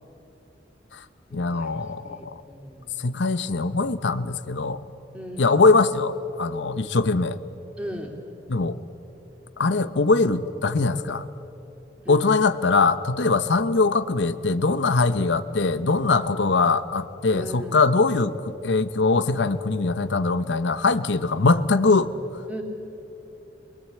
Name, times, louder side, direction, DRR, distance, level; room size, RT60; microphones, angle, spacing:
voice 1, 1.3-2.3 3.0-4.8 5.4-7.4 8.5-8.8 9.6-11.2 12.1-22.1, left 3 dB, 85° left, 12 dB, 0.8 m, -22 dB
voice 2, 2.0-3.1 5.1-5.6 7.8-8.1 12.0-12.4 17.3-17.8 22.5-22.6, equal, 5° right, 1 dB, 2.8 m, -37 dB
22.5 x 22.5 x 8.6 m, 2.9 s
head